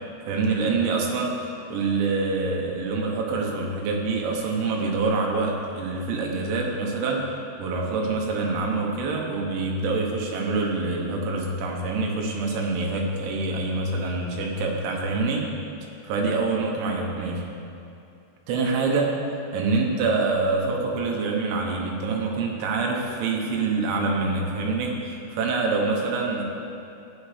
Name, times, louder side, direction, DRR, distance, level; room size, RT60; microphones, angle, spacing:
voice 1, 0.3-1.4 1.7-15.5 16.0-17.5 18.5-26.4, right 3 dB, 85° right, 0 dB, 3.6 m, -26 dB
15.5 x 9.5 x 3.4 m, 2.6 s
omnidirectional pair, 5.2 m